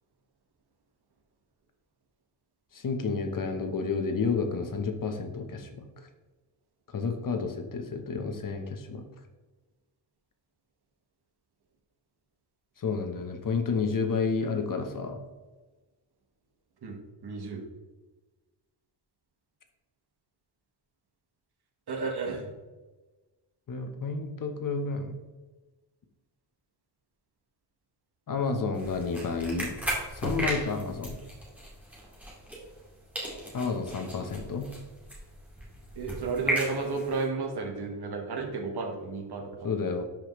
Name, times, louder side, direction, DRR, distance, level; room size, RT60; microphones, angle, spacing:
voice 1, 2.7-5.9 6.9-9.0 12.8-15.2 23.7-25.2 28.3-29.8 30.1-31.2 33.5-34.7 39.6-40.0, left 4 dB, 50° left, 5 dB, 1.1 m, -30 dB
voice 2, 17.2-17.6 21.9-22.5 36.0-39.7, right 4 dB, 60° right, 2 dB, 1.6 m, -32 dB
sound 1, 28.7-32.9 33.1-37.2, right 1 dB, 5° right, 2.3 m, -36 dB
12.0 x 5.2 x 3.2 m, 1.2 s
wide cardioid pair, 140°, 43 cm